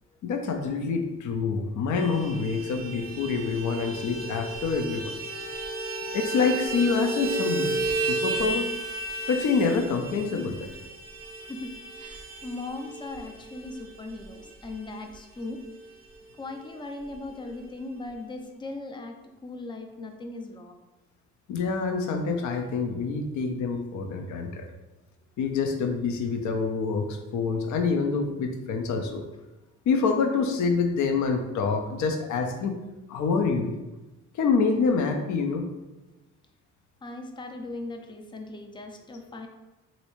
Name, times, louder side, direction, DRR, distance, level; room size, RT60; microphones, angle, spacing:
voice 1, 0.2-5.1 6.1-7.8 8.1-8.7 9.3-10.7 21.5-24.7 25.4-29.2 29.9-32.7 33.1-33.7 34.3-35.6, left 4 dB, 70° left, 5 dB, 0.6 m, -26 dB
Vehicle horn car horn honking, 1.9-15.8 16.1-16.2 16.5-16.7 17.0-17.7, right 2 dB, 30° right, 0.7 m, -33 dB
voice 2, 11.5-15.6 16.4-19.2 19.4-20.8 37.0-39.5, left 2 dB, 15° left, 4 dB, 0.4 m, -38 dB
3.1 x 2.7 x 3.0 m, 1.1 s
cardioid pair, 90°, 30 cm